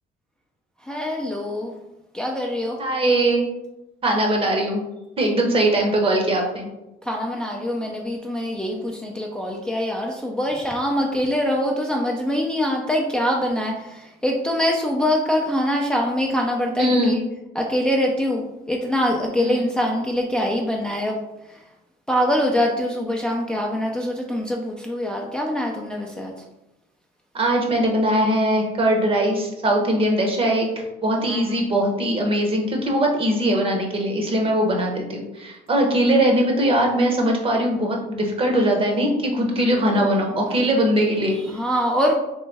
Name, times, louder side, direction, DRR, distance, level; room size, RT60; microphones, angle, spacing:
voice 1, 0.8-1.7 2.1-2.8 7.0-17.2 17.5-21.2 21.5-21.6 22.1-26.3 31.2-31.6 41.4-42.1, equal, 5° left, -1 dB, 0.4 m, -24 dB
voice 2, 2.8-3.6 4.0-4.8 5.2-6.7 16.8-17.2 19.4-19.7 27.3-30.7 31.0-41.4, right 1 dB, 35° right, 1 dB, 0.9 m, -21 dB
3.2 x 3.1 x 3.3 m, 0.96 s
cardioid pair, 110°, 17 cm